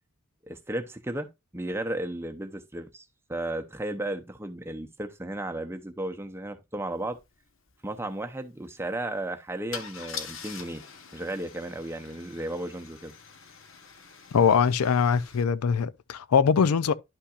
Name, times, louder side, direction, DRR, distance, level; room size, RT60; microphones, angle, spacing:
voice 1, 0.5-1.3 1.5-7.2 7.8-10.8 11.1-13.1 14.3-14.5, right 1 dB, 10° right, 0.7 m, -34 dB
Car / Engine starting / Idling, 7.1-7.2 7.5-7.7 9.7-15.4, left 6 dB, 65° left, 1.1 m, -44 dB
voice 2, 14.3-16.9, left 6 dB, 90° left, 0.4 m, -22 dB
11.5 x 5.7 x 2.4 m
head